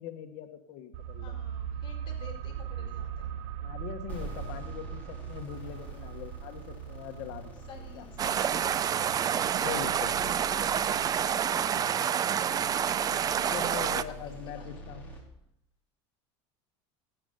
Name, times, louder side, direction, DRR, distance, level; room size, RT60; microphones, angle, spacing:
voice 1, 0.0-1.4 2.8-2.9 3.6-7.5 7.9-8.1 9.6-10.7 13.4-15.1, left 10 dB, 60° left, 6 dB, 1.5 m, -42 dB
sound 1, 0.9-12.3 12.6-12.7, right 9 dB, 55° right, 0.9 m, -41 dB
voice 2, 1.2-3.3 4.3-4.6 7.7-9.0 11.0-11.5 13.3-13.8 14.2-14.8, left 4 dB, 35° left, -2 dB, 4.1 m, -52 dB
sound 2, 4.1-15.2, right 1 dB, 10° left, 4.1 m, -46 dB
sound 3, 8.2-14.0, right 9 dB, 25° right, 0.4 m, -28 dB
12.0 x 9.1 x 5.3 m, 0.79 s
supercardioid pair, 130°, 15 cm